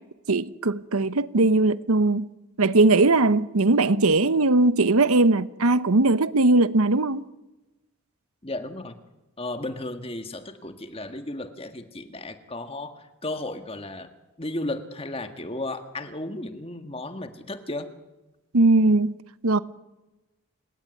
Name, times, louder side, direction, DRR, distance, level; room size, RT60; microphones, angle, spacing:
voice 1, 0.3-2.3 2.6-7.2 18.5-19.1 19.4-19.6, right 2 dB, 85° right, 1.0 m, -20 dB
voice 2, 8.4-9.0 9.4-14.1 14.4-17.9, left 2 dB, 25° left, 1.7 m, -34 dB
29.0 x 17.5 x 9.4 m
head